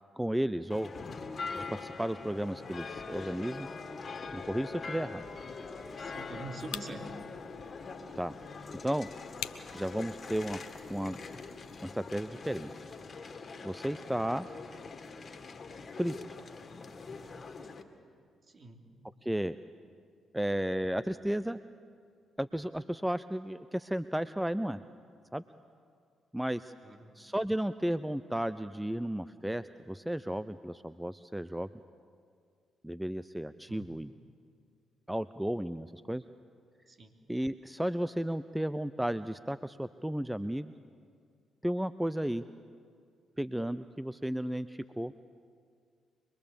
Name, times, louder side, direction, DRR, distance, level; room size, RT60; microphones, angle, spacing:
voice 1, 0.2-0.9 1.5-3.7 4.3-5.2 8.2-8.3 8.8-9.1 9.7-10.6 10.9-11.2 11.8-12.7 13.6-14.5 16.0-16.2 19.2-19.6 20.3-21.6 22.4-24.8 25.3-25.4 26.3-26.7 27.2-31.7 32.8-34.1 35.1-36.2 37.3-40.7 41.6-42.4 43.4-45.1, right 1 dB, 5° right, 14 dB, 0.6 m, -33 dB
sound 1, 0.7-17.8, left 4 dB, 45° left, 2.1 m, -43 dB
sound 2, 5.2-11.9, left 11 dB, 75° left, 0.8 m, -49 dB
voice 2, 6.0-7.1 18.5-18.8 26.8-27.1 33.7-33.9 36.9-37.1, right 2 dB, 45° right, 3 dB, 3.1 m, -44 dB
24.5 x 22.0 x 7.1 m, 2.2 s
hypercardioid pair, 45°, 0 cm